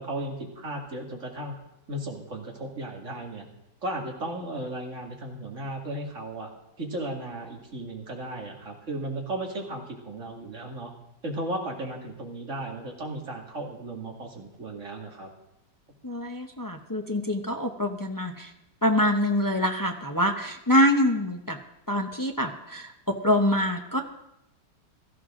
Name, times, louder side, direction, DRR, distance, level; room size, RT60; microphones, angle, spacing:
voice 1, 0.0-1.6 1.9-3.5 3.8-6.5 6.8-10.9 11.2-15.3, right 1 dB, 45° right, 0 dB, 2.6 m, -35 dB
voice 2, 16.0-18.5 18.8-21.6 21.9-24.0, left 1 dB, 25° left, 4 dB, 0.4 m, -25 dB
17.5 x 14.0 x 3.8 m, 0.86 s
omnidirectional pair, 1.9 m